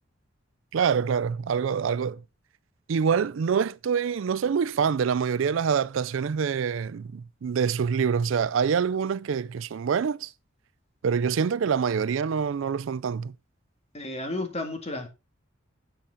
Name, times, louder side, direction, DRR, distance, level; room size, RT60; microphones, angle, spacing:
voice 1, 0.7-2.2 2.9-10.3 11.0-13.3, right 6 dB, 75° right, 0.4 m, -26 dB
voice 2, 13.9-15.1, left 2 dB, 30° left, 2.0 m, -32 dB
8.8 x 7.8 x 4.0 m
head